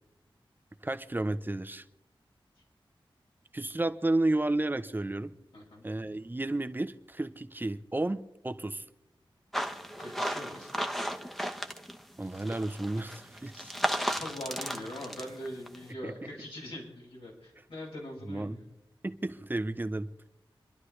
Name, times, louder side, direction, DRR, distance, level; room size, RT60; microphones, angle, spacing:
voice 1, 0.8-1.8 3.5-5.3 5.8-8.2 8.4-8.8 12.2-13.7 16.0-16.1 18.3-18.6 19.0-20.1, right 2 dB, 20° right, 10 dB, 0.8 m, -32 dB
voice 2, 5.5-5.9 10.0-11.0 13.6-13.8 14.1-18.7, left 1 dB, 80° left, -4 dB, 5.7 m, -42 dB
sound 1, 9.5-12.0 12.3-15.8, equal, 5° left, 1.0 m, -35 dB
28.5 x 11.5 x 3.3 m, 0.88 s
wide cardioid pair, 85°, 9 cm